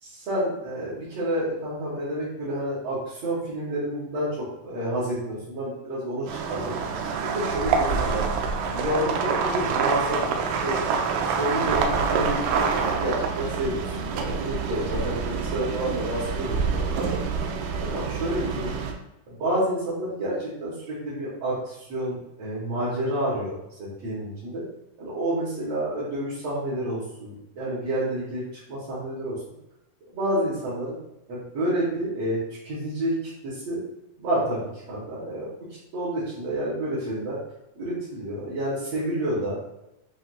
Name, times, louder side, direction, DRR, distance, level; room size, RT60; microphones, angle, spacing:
voice 1, 0.3-6.8 7.2-8.3 8.7-17.1 17.4-17.5 17.8-18.8 19.3-24.6 25.0-29.4 30.1-31.0 31.3-33.1 33.4-33.8 34.2-35.5 35.9-37.4 37.8-39.8, right 1 dB, 60° right, -9 dB, 2.0 m, -29 dB
sound 1, 6.3-18.9, right 5 dB, 80° right, 1.9 m, -26 dB
7.5 x 2.6 x 2.2 m, 0.89 s
omnidirectional pair, 3.5 m